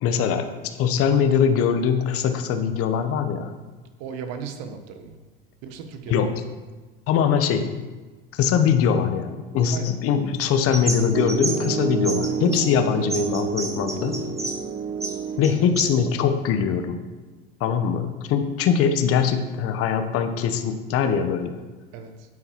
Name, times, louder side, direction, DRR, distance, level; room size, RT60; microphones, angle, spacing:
voice 1, 0.0-3.5 6.1-6.3 7.1-7.7 8.3-14.2 15.4-17.0 17.6-21.6, left 7 dB, 50° left, 7 dB, 1.2 m, -22 dB
voice 2, 4.0-5.1 5.6-6.2 9.7-9.9 21.9-22.1, right 6 dB, 60° right, 7 dB, 1.5 m, -36 dB
sound 1, 10.4-11.7 12.0-14.6 14.9-16.0, right 2 dB, 10° right, 1.5 m, -31 dB
Piano, 11.1-16.1, right 6 dB, 30° right, 0.7 m, -29 dB
9.0 x 8.6 x 4.7 m, 1.3 s
hypercardioid pair, 85°, 29 cm